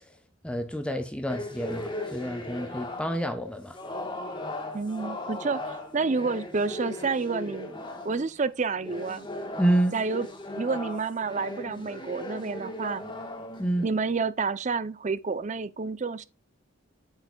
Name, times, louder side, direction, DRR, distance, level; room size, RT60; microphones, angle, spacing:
voice 1, 0.4-3.8 9.6-10.0 13.6-13.9, right 1 dB, 5° left, 0.7 m, -28 dB
sound 1, 1.3-3.4 3.7-8.3 8.7-14.1, left 1 dB, 20° left, 1.3 m, -38 dB
voice 2, 4.7-7.7 8.0-9.3 9.9-10.3 10.6-13.0 13.8-16.2, right 4 dB, 35° right, 0.5 m, -29 dB
8.0 x 6.6 x 2.3 m
head